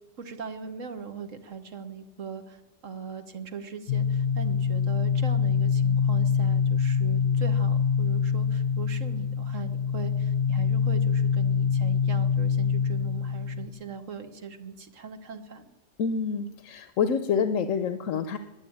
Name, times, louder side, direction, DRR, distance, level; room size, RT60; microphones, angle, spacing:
voice 1, 0.2-15.7, right 6 dB, 85° right, 7 dB, 1.6 m, -40 dB
sound 1, 3.9-13.7, left 6 dB, 60° left, 0.8 m, -25 dB
voice 2, 16.0-18.4, left 6 dB, 90° left, 10 dB, 1.1 m, -27 dB
20.5 x 7.8 x 8.7 m, 1.1 s
omnidirectional pair, 1.3 m